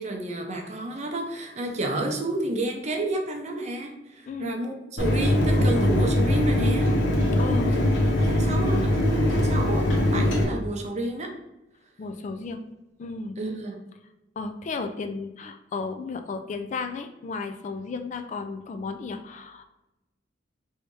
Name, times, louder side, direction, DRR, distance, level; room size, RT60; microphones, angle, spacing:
voice 1, 0.0-6.9 7.6-7.9 8.2-11.3 13.4-13.8, right 1 dB, 40° right, 2 dB, 0.7 m, -30 dB
Mechanisms, 5.0-10.4, left 1 dB, 75° left, 1.1 m, -22 dB
voice 2, 7.4-7.7 12.0-12.6 13.0-13.4 14.4-19.6, left 4 dB, 40° left, 7 dB, 0.3 m, -33 dB
3.2 x 2.7 x 4.6 m, 0.97 s
head